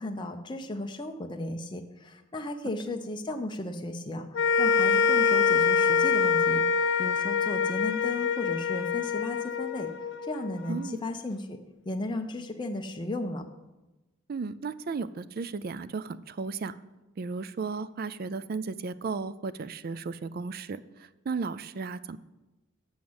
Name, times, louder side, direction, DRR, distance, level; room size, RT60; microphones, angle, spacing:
voice 1, 0.0-9.9 10.3-11.6 11.9-13.4, left 1 dB, 25° left, 4 dB, 0.6 m, -35 dB
sound 1, 4.3-10.8, left 6 dB, 60° left, 0.5 m, -25 dB
voice 2, 10.7-11.0 14.3-16.8 17.2-20.8 21.3-22.2, right 4 dB, 50° right, 16 dB, 0.4 m, -34 dB
7.2 x 6.3 x 7.8 m, 1.0 s
head